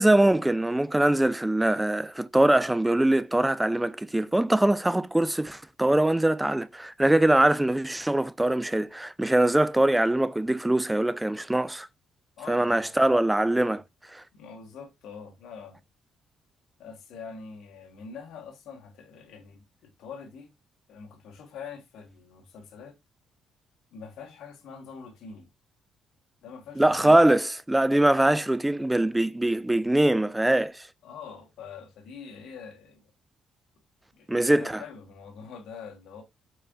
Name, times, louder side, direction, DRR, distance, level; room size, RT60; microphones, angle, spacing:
voice 1, 0.0-11.9 12.5-13.8 14.1-14.2 26.8-30.9 34.3-34.8, right 1 dB, 10° right, 0.4 m, -23 dB
voice 2, 12.4-13.0 14.3-15.8 16.8-20.5 20.9-23.0 23.9-25.5 26.4-27.2 31.0-33.1 34.1-36.2, left 6 dB, 80° left, 1.4 m, -44 dB
4.8 x 4.6 x 2.4 m
cardioid pair, 90°, 0 cm